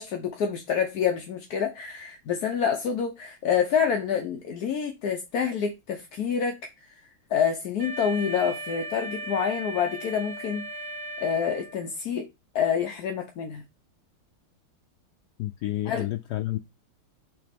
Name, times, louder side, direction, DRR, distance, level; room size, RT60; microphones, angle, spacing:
voice 1, 0.0-6.6 6.9-7.0 7.3-10.7 11.2-12.3 12.5-13.6 15.9-16.1, left 7 dB, 60° left, 1.1 m, -27 dB
Wind instrument woodwind instrument, 7.8-12.0, right 1 dB, 60° right, 2.1 m, -37 dB
voice 2, 15.4-16.6, left 15 dB, 80° left, 0.9 m, -30 dB
6.9 x 3.1 x 5.1 m
omnidirectional pair, 2.3 m